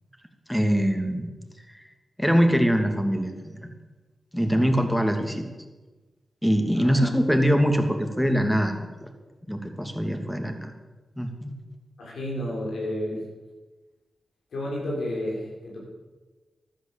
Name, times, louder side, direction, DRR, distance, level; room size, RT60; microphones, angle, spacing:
voice 1, 0.5-1.3 1.7-1.8 2.2-3.7 4.3-5.5 6.4-9.1 9.5-10.7 11.2-11.5, equal, 5° left, 4 dB, 2.8 m, -23 dB
voice 2, 12.0-13.2 14.5-15.8, left 1 dB, 90° left, -3 dB, 6.6 m, -31 dB
14.5 x 12.0 x 7.7 m, 1.2 s
cardioid pair, 60°, 0 cm